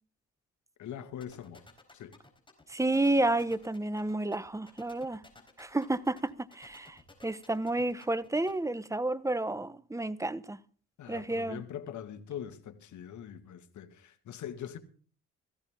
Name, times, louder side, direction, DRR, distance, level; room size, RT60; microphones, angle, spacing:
voice 1, 0.8-1.6 1.9-2.1 11.0-14.8, left 9 dB, 70° left, 2.1 m, -42 dB
sound 1, 1.2-8.5, left 2 dB, 15° left, 4.4 m, -56 dB
voice 2, 2.7-5.2 5.6-10.6 11.1-11.6, right 2 dB, 10° right, 0.9 m, -31 dB
17.0 x 15.0 x 3.7 m
cardioid pair, 90°, 30 cm